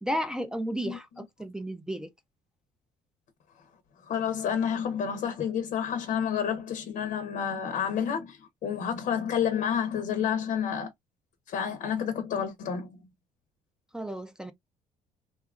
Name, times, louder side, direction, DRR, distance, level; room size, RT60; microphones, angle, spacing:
voice 1, 0.0-2.1 13.9-14.5, equal, 5° right, 0.4 m, -33 dB
voice 2, 4.1-10.9 11.5-12.9, left 8 dB, 65° left, 0.7 m, -29 dB
2.8 x 2.3 x 2.3 m
cardioid pair, 100°, 15 cm